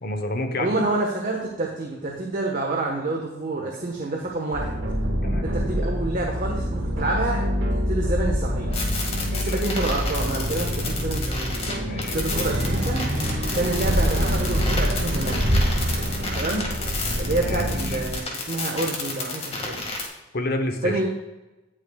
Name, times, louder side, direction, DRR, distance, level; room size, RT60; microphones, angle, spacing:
voice 1, 0.0-0.8 5.2-5.4 9.2-9.6 11.8-12.2 17.4-18.0 20.3-21.0, left 1 dB, 50° left, 6 dB, 1.1 m, -29 dB
voice 2, 0.6-4.8 5.4-8.8 9.4-11.6 12.1-13.0 13.5-15.5 16.3-16.6 17.2-19.8 20.8-21.1, right 2 dB, 45° right, -1 dB, 1.4 m, -28 dB
sound 1, 4.5-18.2, equal, 65° right, 2.0 m, -27 dB
sound 2, 8.7-20.1, left 3 dB, 30° left, 2.0 m, -31 dB
sound 3, 12.2-17.1, equal, 80° right, 2.0 m, -27 dB
18.0 x 6.4 x 2.4 m, 1.0 s
head